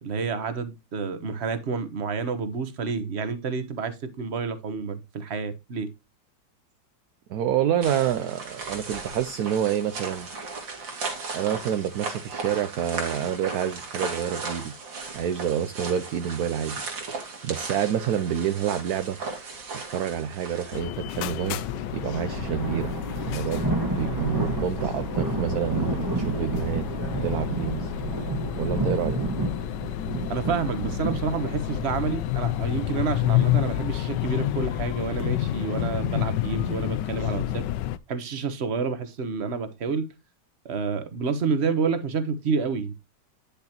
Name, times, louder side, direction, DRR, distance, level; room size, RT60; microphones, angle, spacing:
voice 1, 0.0-5.9 30.3-37.7 38.1-40.1 40.6-42.9, right 5 dB, 40° right, 1.3 m, -29 dB
voice 2, 7.3-10.3 11.3-14.7 15.1-16.8 17.4-19.2 19.9-21.6 21.9-22.9 23.2-26.9 27.2-27.9 28.6-29.2, right 9 dB, 65° right, 1.0 m, -28 dB
sound 1, 7.8-20.8, right 4 dB, 85° right, 2.9 m, -36 dB
sound 2, 20.7-38.0, left 13 dB, 75° left, 1.2 m, -29 dB
sound 3, 21.2-37.1, right 2 dB, 10° right, 1.5 m, -31 dB
9.9 x 6.8 x 2.9 m
omnidirectional pair, 2.0 m